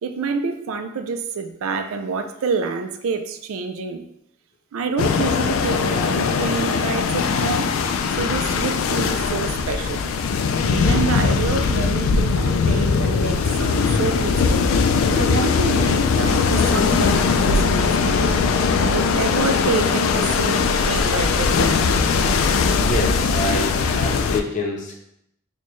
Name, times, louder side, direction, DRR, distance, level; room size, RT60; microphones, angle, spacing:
voice 1, 0.0-4.1 4.7-7.7 8.1-10.0 10.7-14.7 15.1-18.4 18.8-21.8, right 4 dB, 90° right, 8 dB, 0.4 m, -27 dB
sound 1, 5.0-24.4, left 5 dB, 80° left, 0.3 m, -20 dB
voice 2, 22.7-24.9, left 1 dB, 40° left, 0 dB, 0.6 m, -27 dB
4.3 x 2.2 x 3.0 m, 0.79 s
head